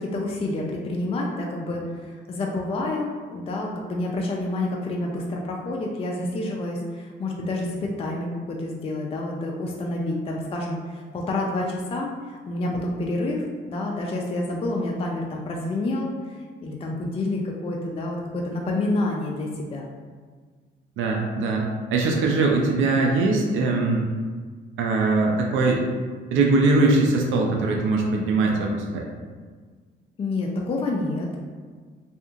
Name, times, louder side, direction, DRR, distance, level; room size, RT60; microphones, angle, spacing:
voice 1, 0.0-16.1 16.6-19.9 30.2-31.3, left 2 dB, 30° left, -1 dB, 0.3 m, -28 dB
voice 2, 21.0-21.6 21.9-24.0 24.8-25.8 26.3-29.0, right 3 dB, 80° right, 0 dB, 0.4 m, -21 dB
2.7 x 2.4 x 2.4 m, 1.5 s
cardioid pair, 90°, 20 cm